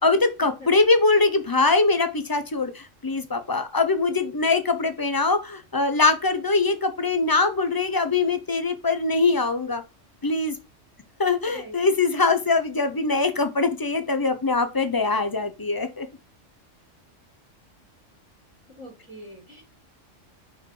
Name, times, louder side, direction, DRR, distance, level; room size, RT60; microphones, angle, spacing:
voice 1, 0.0-9.8 10.2-10.6 11.2-16.1, left 3 dB, 25° left, 0.6 m, -22 dB
voice 2, 11.4-11.8 18.7-19.6, equal, 10° right, 2.0 m, -42 dB
4.7 x 4.6 x 4.8 m
omnidirectional pair, 1.3 m